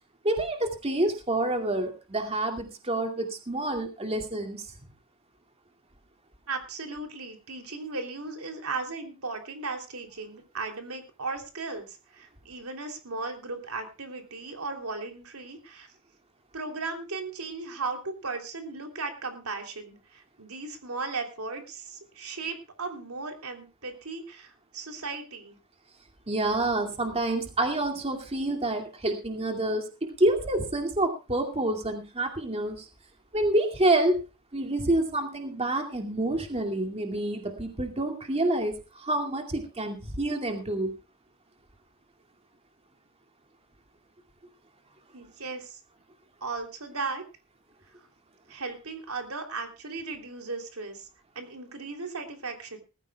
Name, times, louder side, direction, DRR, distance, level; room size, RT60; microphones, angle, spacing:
voice 1, 0.2-4.6 26.3-29.9 30.2-32.9 33.3-34.2 34.5-40.9, right 1 dB, 30° right, 3 dB, 2.4 m, -28 dB
voice 2, 6.5-15.9 16.5-25.6 45.1-45.8 46.4-47.2 48.5-51.1 51.3-52.8, right 3 dB, 90° right, 4 dB, 3.2 m, -36 dB
20.0 x 14.5 x 2.3 m, 0.30 s
head